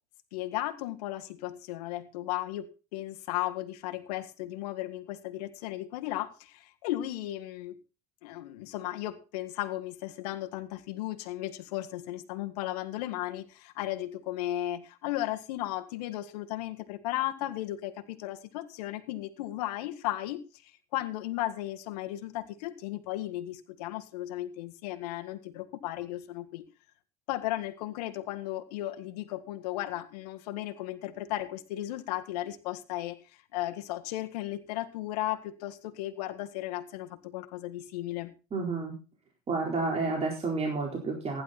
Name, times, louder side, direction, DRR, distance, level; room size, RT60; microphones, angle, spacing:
voice 1, 0.3-7.8 8.2-26.6 27.3-33.2 33.5-38.3, left 15 dB, 80° left, 10 dB, 1.8 m, -35 dB
voice 2, 38.5-38.9 39.5-41.4, right 3 dB, 30° right, 0 dB, 4.3 m, -30 dB
15.5 x 11.0 x 4.2 m, 0.33 s
supercardioid pair, 95°, 20 cm